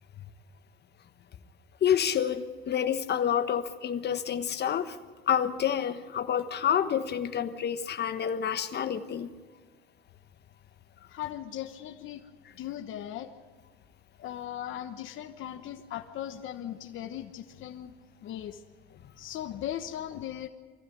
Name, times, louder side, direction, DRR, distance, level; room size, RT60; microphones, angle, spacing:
voice 1, 1.8-5.0 5.3-9.3, left 9 dB, 55° left, 1.3 m, -28 dB
voice 2, 11.1-12.2 12.5-13.3 14.2-17.9 18.2-18.6 18.9-20.5, left 11 dB, 80° left, 1.1 m, -38 dB
24.5 x 15.5 x 9.4 m
cardioid pair, 90°, 20 cm